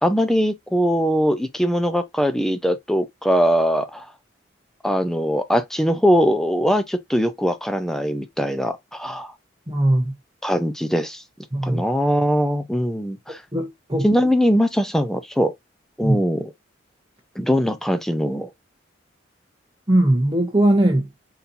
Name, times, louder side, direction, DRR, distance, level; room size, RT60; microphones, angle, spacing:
voice 1, 0.0-4.0 4.8-9.3 10.4-11.2 11.6-13.4 14.0-15.5 16.0-16.5 17.4-18.5, equal, ahead, 0.5 m, -21 dB
voice 2, 9.7-10.1 11.5-11.8 13.3-14.1 16.0-16.2 19.9-21.1, right 1 dB, 20° right, 1.0 m, -19 dB
4.2 x 4.1 x 2.6 m
head